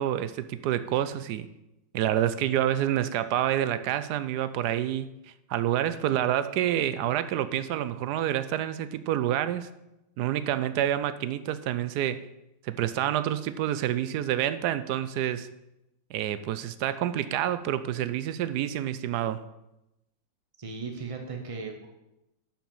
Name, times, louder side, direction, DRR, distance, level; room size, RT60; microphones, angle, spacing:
voice 1, 0.0-1.5 1.9-5.1 5.5-9.7 10.2-12.2 12.6-15.5 16.1-19.4, right 11 dB, 75° right, 13 dB, 0.9 m, -28 dB
voice 2, 20.6-21.9, right 4 dB, 35° right, 3 dB, 0.5 m, -37 dB
11.0 x 6.0 x 7.2 m, 0.91 s
omnidirectional pair, 2.2 m